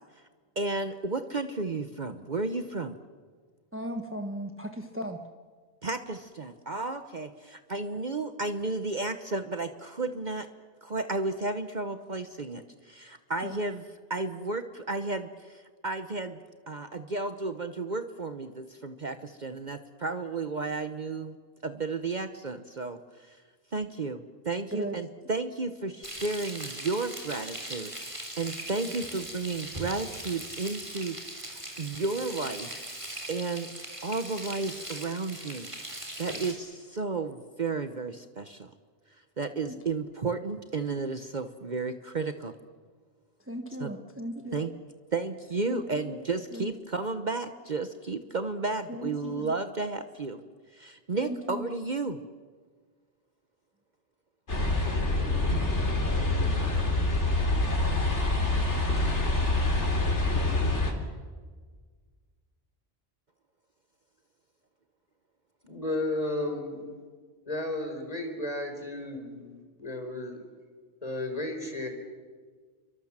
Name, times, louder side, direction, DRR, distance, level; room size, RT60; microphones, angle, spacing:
voice 1, 0.6-2.9 5.8-10.5 10.8-13.8 14.1-21.4 21.6-23.4 23.7-32.7 33.3-33.7 34.0-38.7 39.4-42.5 43.8-43.9 44.5-44.7 45.1-50.4 50.7-52.2, right 3 dB, 45° right, 9 dB, 1.1 m, -33 dB
voice 2, 3.7-5.2 13.4-13.6 24.7-25.0 39.7-39.8 43.5-44.6 45.7-46.2 46.5-46.7 48.9-49.5 51.2-51.7, right 1 dB, 10° right, 5 dB, 1.2 m, -37 dB
Frying (food), 26.0-36.5, right 1 dB, 25° right, 4.0 m, -40 dB
sound 1, 54.5-60.9, left 2 dB, 85° left, 3.8 m, -26 dB
voice 3, 65.6-66.9 67.5-70.4 71.0-71.9, left 1 dB, 35° left, 4 dB, 4.6 m, -33 dB
29.0 x 24.0 x 7.4 m, 1.5 s
omnidirectional pair, 1.2 m